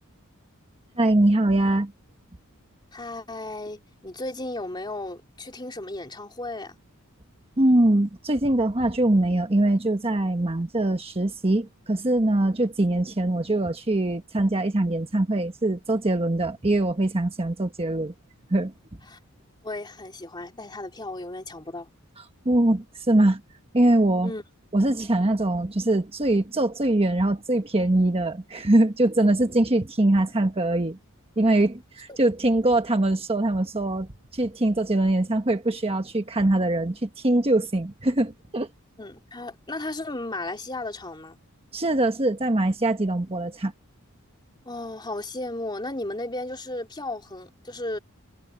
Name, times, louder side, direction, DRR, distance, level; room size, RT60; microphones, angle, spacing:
voice 1, 1.0-1.9 7.6-18.1 18.5-18.7 22.4-23.4 23.7-24.3 24.7-31.0 31.4-38.7 41.7-43.7, right 1 dB, 25° right, 1.2 m, -22 dB
voice 2, 2.9-6.7 19.1-19.2 19.6-21.9 24.2-24.4 32.1-32.2 39.0-41.4 44.6-48.0, left 2 dB, 20° left, 3.0 m, -34 dB
head